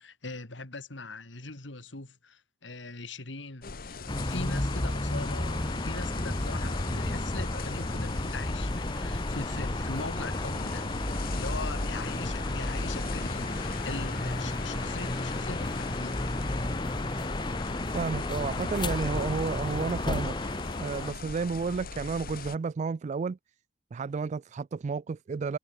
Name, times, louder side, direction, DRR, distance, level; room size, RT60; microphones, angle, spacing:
voice 1, 0.0-10.9 11.3-16.2, left 3 dB, 85° left, 2.8 m, -41 dB
sound 1, 3.6-22.6, left 4 dB, 55° left, 1.1 m, -39 dB
sound 2, 4.1-21.1, left 1 dB, 25° left, 1.3 m, -32 dB
Chime, 9.0-16.6, right 3 dB, 20° right, 4.8 m, -57 dB
voice 2, 17.9-20.4 20.8-23.4 23.9-25.6, right 5 dB, 40° right, 0.3 m, -31 dB
head